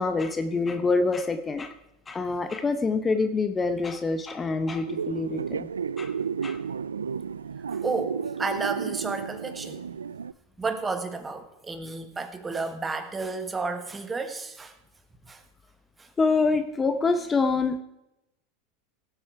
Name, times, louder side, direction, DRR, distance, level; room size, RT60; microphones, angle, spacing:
voice 1, 0.0-1.7 2.1-5.7 6.0-6.1 6.4-6.6 16.2-17.8, left 4 dB, 20° left, 9 dB, 0.9 m, -26 dB
sound 1, 4.9-10.3, right 6 dB, 90° right, 0.3 m, -32 dB
voice 2, 7.7-9.8 10.6-14.8 15.2-15.4 16.0-16.1, right 4 dB, 20° right, 9 dB, 1.5 m, -32 dB
17.0 x 7.9 x 4.7 m, 0.90 s
hypercardioid pair, 90°, 0 cm